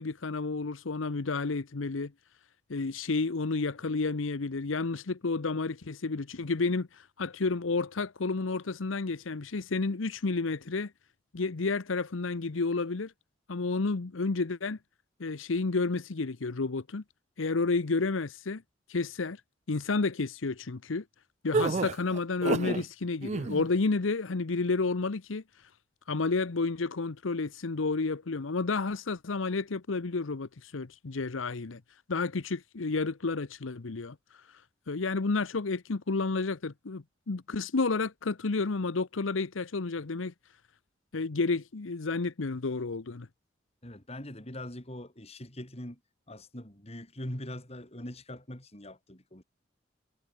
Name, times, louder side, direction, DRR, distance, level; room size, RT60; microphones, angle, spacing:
voice 1, 0.0-2.1 2.7-10.9 11.3-13.1 13.5-14.8 15.2-17.0 17.4-18.6 18.9-19.4 19.7-21.0 21.4-25.4 26.1-31.8 32.1-34.2 34.9-40.3 41.1-43.3, left 3 dB, 90° left, 0.8 m, -31 dB
sound 1, 21.5-22.8 23.2-23.7, right 3 dB, 35° right, 0.4 m, -29 dB
voice 2, 43.8-46.0 46.3-49.4, left 1 dB, 30° left, 4.0 m, -42 dB
head